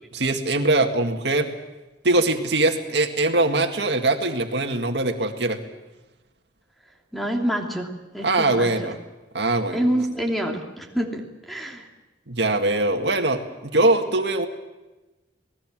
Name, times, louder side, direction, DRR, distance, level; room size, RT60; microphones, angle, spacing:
voice 1, 0.1-1.5 2.0-5.6 8.2-9.0 9.3-9.8 12.3-14.5, right 2 dB, 65° right, 5 dB, 2.1 m, -22 dB
voice 2, 7.1-8.9 9.7-11.9, equal, ahead, 1 dB, 2.9 m, -27 dB
27.5 x 19.0 x 7.6 m, 1.1 s
head